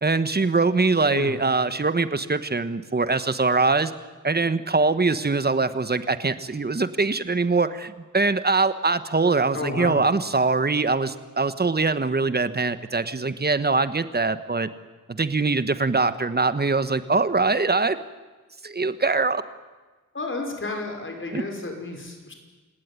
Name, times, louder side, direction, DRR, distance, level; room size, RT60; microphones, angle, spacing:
voice 1, 0.0-3.9 4.2-14.7 15.1-18.0 18.6-19.4 21.3-21.4, right 3 dB, 30° right, 12 dB, 1.4 m, -23 dB
voice 2, 1.1-1.4 9.5-10.0 20.1-22.3, left 2 dB, 40° left, 3 dB, 5.3 m, -31 dB
28.5 x 17.5 x 9.9 m, 1.3 s
wide cardioid pair, 110°, 32 cm